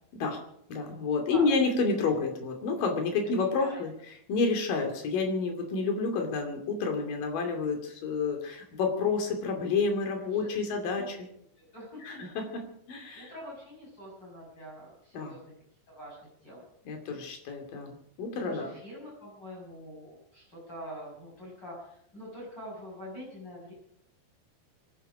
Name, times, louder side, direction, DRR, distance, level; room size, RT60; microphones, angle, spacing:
voice 1, 0.7-3.9 4.3-11.2 12.0-13.3 15.1-15.3 16.9-18.7, left 4 dB, 50° left, 3 dB, 3.8 m, -29 dB
voice 2, 3.4-3.8 10.3-11.1 11.7-12.3 13.1-15.5 15.9-16.2 16.4-16.6 18.4-23.7, equal, 20° left, -4 dB, 6.7 m, -45 dB
25.5 x 11.5 x 5.0 m, 0.71 s
omnidirectional pair, 5.7 m